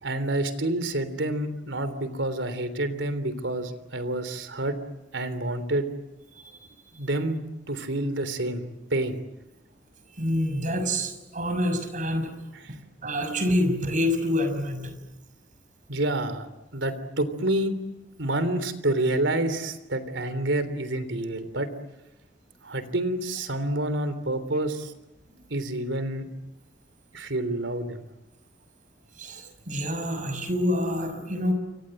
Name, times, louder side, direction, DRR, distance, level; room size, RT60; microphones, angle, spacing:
voice 1, 0.0-4.8 5.1-5.9 6.9-7.4 7.7-9.2 12.5-12.6 15.9-17.8 18.2-21.7 22.6-24.9 25.5-26.3 27.1-28.0, right 1 dB, 85° right, 12 dB, 3.4 m, -28 dB
voice 2, 10.2-12.3 13.0-14.9 29.2-31.5, left 1 dB, 45° right, 8 dB, 6.1 m, -27 dB
29.0 x 25.0 x 7.8 m, 0.98 s
head